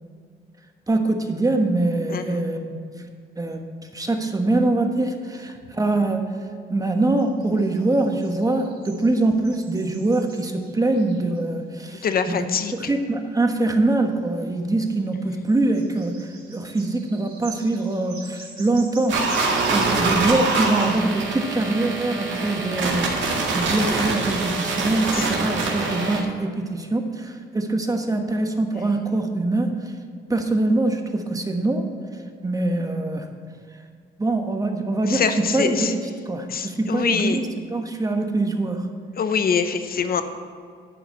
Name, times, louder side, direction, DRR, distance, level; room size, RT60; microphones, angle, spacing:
voice 1, 0.9-2.8 3.4-3.6 3.9-6.3 6.7-12.5 12.9-29.8 30.3-31.9 32.4-33.3 34.2-38.9, right 2 dB, 15° right, 4 dB, 1.3 m, -23 dB
voice 2, 2.1-2.4 12.0-12.9 25.1-25.3 35.1-35.9 36.5-37.4 39.2-40.2, left 6 dB, 50° left, 9 dB, 0.9 m, -24 dB
sound 1, 7.2-11.4 14.8-15.0 15.3-20.1, right 5 dB, 50° right, 3.1 m, -43 dB
sound 2, 19.1-26.2, right 3 dB, 65° right, 2.0 m, -24 dB
11.0 x 4.8 x 8.2 m, 2.1 s
cardioid pair, 90°, 20 cm